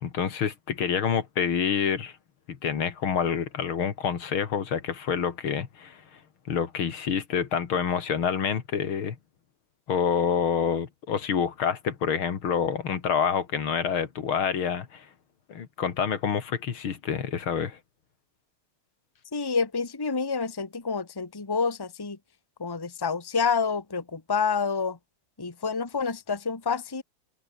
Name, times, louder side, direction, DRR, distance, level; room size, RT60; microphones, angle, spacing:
voice 1, 0.0-2.1 2.5-6.0 6.5-9.2 9.9-15.1 15.5-17.8, left 7 dB, 75° left, 2.8 m, -27 dB
voice 2, 19.3-22.2 22.6-25.0 25.4-27.0, left 5 dB, 10° left, 1.4 m, -28 dB
open air
omnidirectional pair, 2.3 m